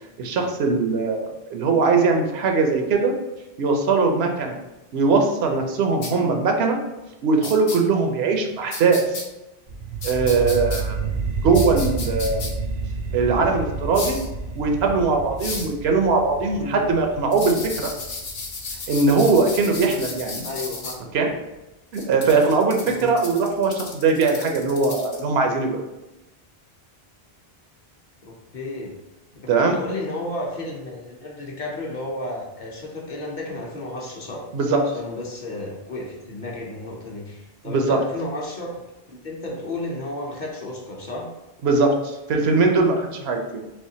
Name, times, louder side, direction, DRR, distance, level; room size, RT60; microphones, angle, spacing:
voice 1, 0.2-1.2 1.5-3.1 3.6-4.6 4.9-6.8 7.2-9.0 10.0-11.1 11.4-12.6 13.1-14.2 14.5-17.9 18.9-20.4 21.1-21.3 21.9-25.8 29.5-29.8 34.5-34.9 37.6-38.0 41.6-43.6, right 4 dB, 85° right, 3 dB, 0.9 m, -20 dB
sound 1, 6.0-6.1 7.4-7.8 8.7-9.2 10.0-10.8 11.5-12.5 13.9-14.3 15.4-15.7 17.3-20.9 21.9-25.2, left 3 dB, 75° left, 0.9 m, -34 dB
sound 2, 9.7-20.7, right 4 dB, 55° right, 0.4 m, -31 dB
voice 2, 20.4-20.9 22.9-23.1 28.2-28.9 29.6-34.4 34.9-38.8 39.1-41.3, left 1 dB, 55° left, -2 dB, 0.8 m, -32 dB
3.5 x 3.0 x 2.7 m, 0.99 s
omnidirectional pair, 1.0 m